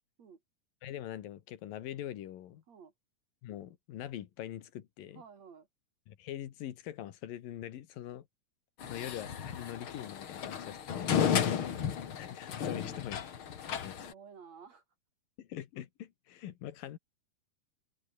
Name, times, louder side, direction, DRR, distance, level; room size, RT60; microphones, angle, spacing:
voice 1, 0.8-2.6 3.4-5.2 6.1-8.3 8.9-11.2 12.2-13.2 13.7-14.0 15.4-17.0, left 12 dB, 80° left, 3.3 m, -43 dB
voice 2, 5.1-5.7 8.8-9.0 12.7-13.0 14.0-14.8, right 6 dB, 50° right, 4.5 m, -53 dB
sound 1, 8.8-14.1, left 8 dB, 45° left, 2.0 m, -33 dB
open air
omnidirectional pair, 3.9 m